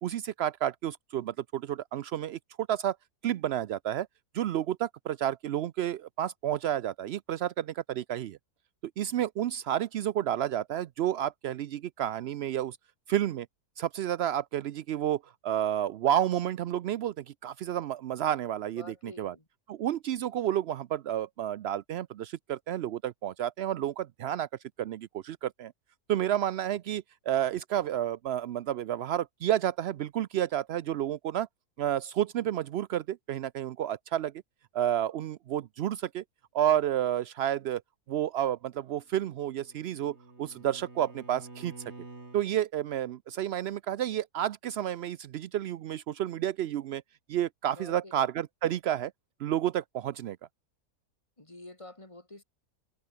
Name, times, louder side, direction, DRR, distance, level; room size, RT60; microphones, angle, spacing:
voice 1, 0.0-3.0 3.2-4.1 4.3-8.4 9.0-12.8 13.1-13.5 13.8-19.3 19.7-24.5 24.8-25.7 26.1-31.5 31.8-34.3 34.7-36.2 36.5-37.8 38.1-41.7 42.3-47.0 47.3-49.1 49.4-50.4, right 11 dB, 80° right, 0.5 m, -30 dB
voice 2, 18.8-19.4 47.7-48.1 51.4-52.4, left 2 dB, 20° left, 2.7 m, -48 dB
Bowed string instrument, 39.1-42.5, right 3 dB, 45° right, 3.7 m, -49 dB
omnidirectional pair, 1.7 m